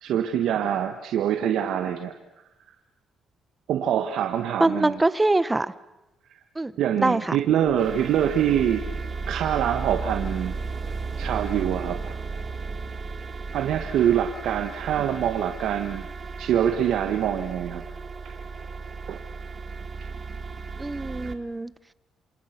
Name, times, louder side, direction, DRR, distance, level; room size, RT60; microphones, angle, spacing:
voice 1, 0.0-2.1 3.7-5.0 6.8-8.8 9.3-10.5 11.2-12.2 13.5-16.1 16.4-17.8 19.1-19.2, right 10 dB, 80° right, 5 dB, 1.7 m, -24 dB
voice 2, 4.6-5.7 6.6-6.7 7.0-7.4 20.8-21.7, right 2 dB, 15° right, 16 dB, 1.2 m, -23 dB
sound 1, 7.6-21.3, right 4 dB, 35° right, 2.1 m, -34 dB
27.5 x 27.0 x 6.1 m, 0.97 s
cardioid pair, 90°, 0 cm